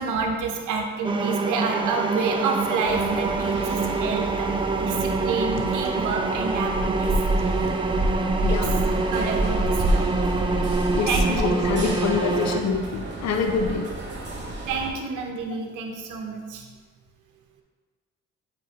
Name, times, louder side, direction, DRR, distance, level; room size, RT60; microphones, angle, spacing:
voice 1, 0.0-7.1 8.5-8.7 9.1-10.5 10.8-11.7 14.7-16.7, right 4 dB, 85° right, 2 dB, 0.8 m, -29 dB
sound 1, 1.0-12.6, right 3 dB, 15° right, 0.5 m, -26 dB
sound 2, 2.8-14.9, right 1 dB, 40° right, 1.9 m, -29 dB
voice 2, 8.4-8.8 10.9-13.9, left 5 dB, 60° left, 4 dB, 0.8 m, -26 dB
7.6 x 5.2 x 2.8 m, 1.5 s
cardioid pair, 90°, 30 cm